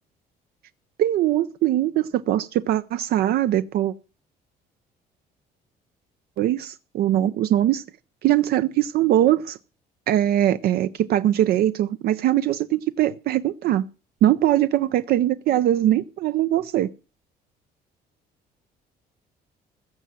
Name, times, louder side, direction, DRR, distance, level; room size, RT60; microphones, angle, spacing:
voice 1, 1.0-3.9 6.4-7.8 8.2-9.6 10.1-13.8 14.2-16.9, right 12 dB, 65° right, 0.5 m, -21 dB
15.0 x 6.3 x 7.4 m
cardioid pair, 110°, 17 cm